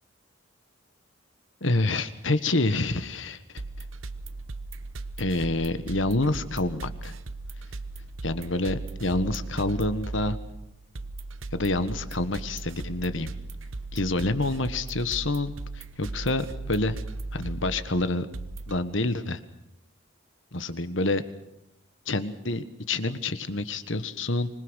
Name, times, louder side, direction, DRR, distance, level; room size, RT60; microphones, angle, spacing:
voice 1, 1.6-3.4 5.2-7.1 8.2-10.4 11.5-13.3 13.9-17.0 17.3-18.3 18.7-19.4 20.5-21.2 22.1-24.5, left 2 dB, 75° left, 12 dB, 1.5 m, -27 dB
sound 1, 3.6-18.8, right 2 dB, 85° right, 1.0 m, -37 dB
25.5 x 21.0 x 6.5 m, 0.87 s
head